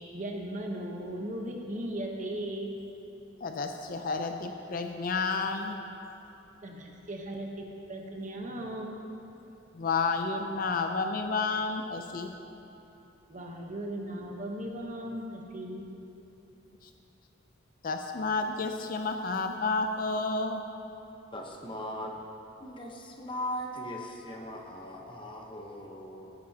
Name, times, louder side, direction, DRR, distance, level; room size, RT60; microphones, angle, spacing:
voice 1, 0.1-2.7 6.6-9.0 13.3-15.8, right 1 dB, 40° right, 1 dB, 1.1 m, -37 dB
voice 2, 3.4-5.8 9.7-12.3 16.8-16.9 17.8-20.6, left 3 dB, 45° left, 5 dB, 0.5 m, -31 dB
voice 3, 21.3-22.2 22.6-26.3, left 1 dB, 25° left, 0 dB, 1.0 m, -39 dB
14.5 x 10.0 x 2.9 m, 3.0 s
head